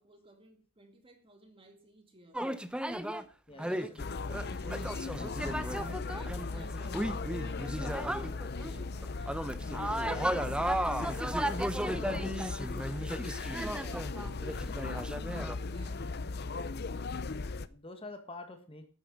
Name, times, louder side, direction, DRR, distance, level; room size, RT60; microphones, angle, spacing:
voice 1, 0.0-2.4 3.5-4.9 6.1-13.1 13.5-15.9, right 1 dB, 25° right, 4 dB, 2.4 m, -58 dB
sound 1, 2.3-3.2 3.6-8.7 9.0-15.6, right 1 dB, 5° right, 0.6 m, -35 dB
voice 2, 3.5-4.0 4.5-4.6 5.2-5.4 5.7-6.2 8.2-8.4 13.7-14.0 16.0-16.4 17.4-18.9, left 2 dB, 25° left, 6 dB, 1.7 m, -48 dB
sound 2, 4.0-17.7, left 3 dB, 50° left, 0.6 m, -37 dB
11.5 x 8.9 x 6.3 m, 0.38 s
head